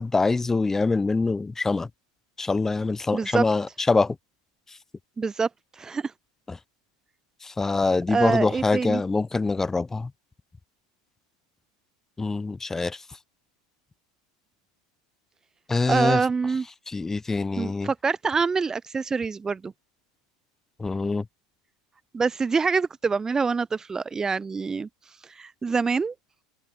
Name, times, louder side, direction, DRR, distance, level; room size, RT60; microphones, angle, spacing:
voice 1, 0.0-1.9 2.4-4.2 6.5-6.6 7.4-10.1 12.2-13.0 15.7-16.2 16.9-17.9 20.8-21.2, left 3 dB, 15° left, 3.2 m, -24 dB
voice 2, 3.1-3.5 5.2-6.1 8.1-9.0 15.9-16.7 17.6-19.7 22.1-24.9 25.2-26.1, right 5 dB, 20° right, 2.1 m, -25 dB
hypercardioid pair, 85°, 3 cm